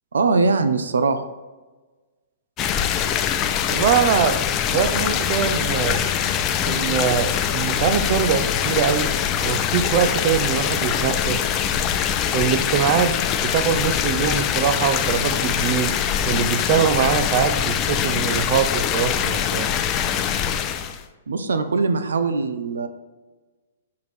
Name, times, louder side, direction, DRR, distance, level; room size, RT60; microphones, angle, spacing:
voice 1, 0.1-1.2 21.3-22.9, right 4 dB, 85° right, 9 dB, 0.6 m, -21 dB
sound 1, 2.6-21.0, left 9 dB, 30° left, 0.5 m, -23 dB
voice 2, 3.7-4.4 4.7-6.0 6.7-9.1 9.4-11.4 12.3-13.2 13.4-15.9 16.2-19.7, right 8 dB, 45° right, 9 dB, 0.5 m, -22 dB
7.1 x 4.7 x 3.1 m, 1.3 s
hypercardioid pair, 135°, 0 cm